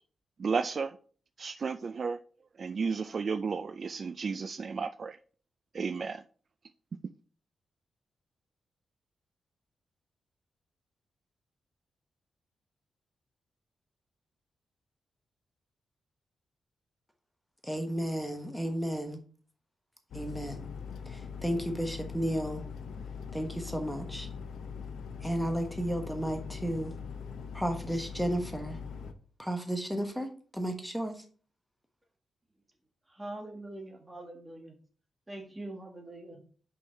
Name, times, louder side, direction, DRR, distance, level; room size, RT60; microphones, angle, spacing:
voice 1, 0.4-1.0 1.4-2.2 2.6-5.2 5.7-6.2, right 5 dB, 50° right, 12 dB, 0.3 m, -33 dB
voice 2, 17.6-19.2 20.1-20.7 21.1-22.6 23.3-24.3 25.2-26.9 27.5-28.8 29.4-30.3 30.5-31.2, equal, ahead, 4 dB, 1.2 m, -33 dB
sound 1, 20.1-29.1, left 6 dB, 90° left, 0.7 m, -42 dB
voice 3, 33.1-34.7 35.3-36.4, right 1 dB, 20° right, 3 dB, 1.8 m, -43 dB
5.4 x 5.3 x 4.5 m, 0.43 s
cardioid pair, 85°, 0 cm